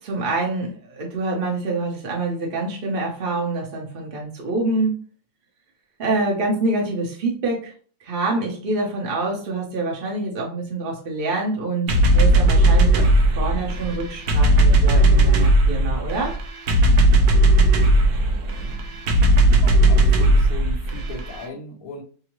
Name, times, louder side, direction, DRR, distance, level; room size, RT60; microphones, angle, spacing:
voice 1, 0.0-5.0 6.0-7.7 8.0-13.1 13.4-16.4, right 2 dB, 40° right, -1 dB, 0.8 m, -26 dB
sound 1, 11.9-21.4, right 1 dB, 70° right, 1.3 m, -17 dB
voice 2, 19.6-22.0, left 2 dB, 55° left, -5 dB, 1.2 m, -36 dB
6.1 x 2.0 x 3.0 m, 0.42 s
omnidirectional pair, 2.1 m